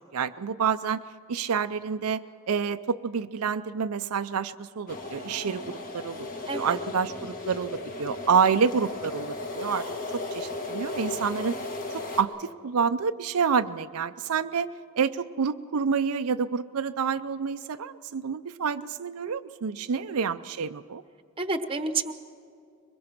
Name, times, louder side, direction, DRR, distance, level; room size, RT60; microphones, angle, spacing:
voice 1, 0.1-1.0 1.3-5.6 5.9-9.8 10.1-11.6 11.9-14.7 15.0-21.0, right 6 dB, 80° right, 10 dB, 0.5 m, -28 dB
sound 1, 4.9-12.2, left 2 dB, 40° left, 1.6 m, -35 dB
voice 2, 6.5-6.8 19.9-20.3 21.4-22.1, right 3 dB, 25° right, 9 dB, 1.0 m, -30 dB
23.0 x 21.0 x 6.0 m, 2.5 s
head